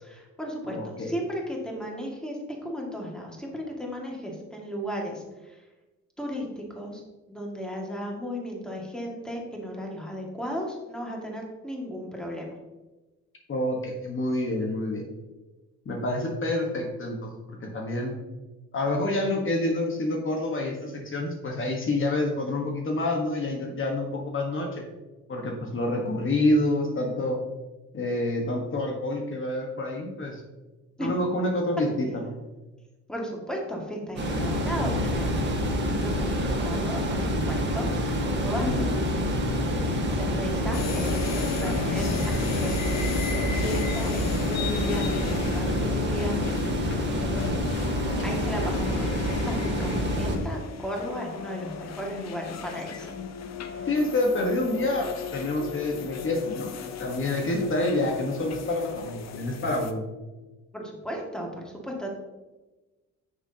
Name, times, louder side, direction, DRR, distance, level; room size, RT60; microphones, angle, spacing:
voice 1, 0.0-5.6 6.2-7.0 7.3-12.5 31.0-31.1 33.1-35.3 36.0-37.9 38.2-38.8 39.7-41.2 41.6-46.9 47.2-47.7 48.2-53.1 53.6-53.8 60.7-62.1, equal, 5° left, -1 dB, 2.0 m, -35 dB
voice 2, 0.7-1.1 13.5-15.0 15.8-17.2 17.5-18.1 18.7-24.9 25.3-27.4 27.9-30.4 31.0-32.3 38.6-39.0 53.9-56.7 57.0-60.0, left 1 dB, 40° left, 0 dB, 1.4 m, -27 dB
sound 1, 34.1-50.4, equal, 35° right, 1.8 m, -27 dB
sound 2, 40.7-59.9, left 6 dB, 60° left, 0.8 m, -36 dB
9.3 x 6.5 x 2.8 m, 1.1 s
cardioid pair, 90°, 30 cm